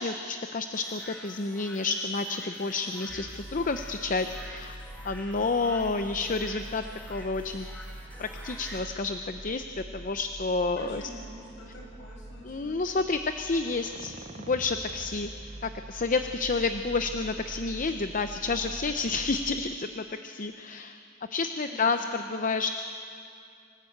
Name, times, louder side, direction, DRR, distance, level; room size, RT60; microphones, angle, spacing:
voice 1, 0.0-4.7 5.0-7.7 8.2-11.0 12.4-14.2 14.5-15.3 15.6-21.0 21.3-22.7, left 3 dB, 40° left, 8 dB, 0.6 m, -30 dB
sound 1, 0.7-8.8, equal, 10° left, 2.5 m, -48 dB
sound 2, 3.1-19.6, right 1 dB, 35° right, 0.7 m, -44 dB
voice 2, 10.8-12.8 21.6-21.9, equal, 65° left, -3 dB, 7.8 m, -47 dB
25.5 x 14.5 x 8.6 m, 2.5 s
head